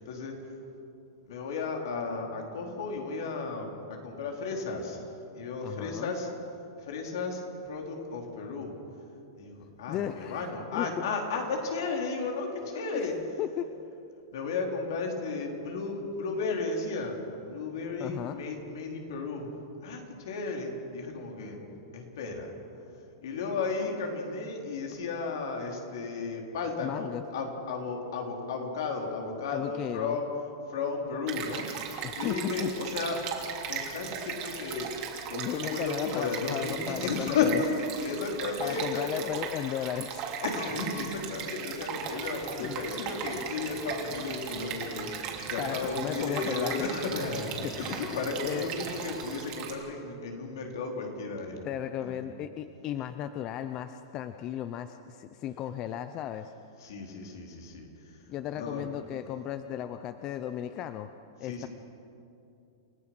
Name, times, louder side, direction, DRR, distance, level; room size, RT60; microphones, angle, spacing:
voice 1, 1.3-5.0 5.3-6.3 6.9-7.4 7.7-8.7 9.4-13.1 14.3-19.5 19.8-21.6 21.9-22.5 23.2-30.3 30.7-31.6 32.2-33.2 33.6-34.9 35.3-37.5 37.8-39.4 40.4-51.6 52.0-52.2 56.8-57.9 58.5-58.9 61.4-61.7, left 4 dB, 70° left, 1 dB, 4.2 m, -34 dB
voice 2, 5.6-6.1 9.9-10.4 10.7-10.9 12.9-13.1 13.4-13.7 18.0-18.4 26.8-27.2 29.5-30.2 32.0-32.7 35.3-37.6 38.6-40.3 42.1-42.2 42.6-42.8 45.6-47.0 47.6-48.7 51.6-56.5 58.3-61.1 61.4-61.7, left 11 dB, 30° left, 10 dB, 0.6 m, -35 dB
Stream, 31.3-49.7, right 7 dB, 35° right, 3.2 m, -38 dB
sound 1, 41.9-49.4, right 2 dB, 5° right, 1.1 m, -47 dB
29.5 x 16.0 x 6.2 m, 2.7 s
supercardioid pair, 160°, 2 cm